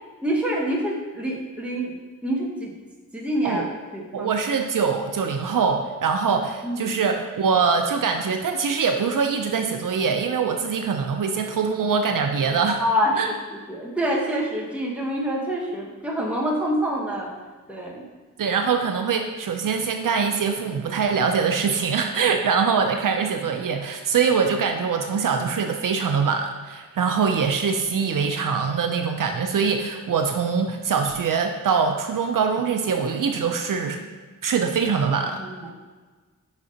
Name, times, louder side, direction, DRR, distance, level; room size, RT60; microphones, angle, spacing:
voice 1, 0.2-2.7 3.1-3.7 3.9-4.3 6.6-6.9 12.8-17.3 17.7-18.1 35.4-35.7, equal, 5° right, -3 dB, 1.1 m, -26 dB
voice 2, 4.1-12.8 13.2-13.3 18.4-34.0 34.4-35.4, right 5 dB, 80° right, 5 dB, 0.5 m, -23 dB
5.1 x 4.2 x 4.9 m, 1.4 s
wide cardioid pair, 75°, 32 cm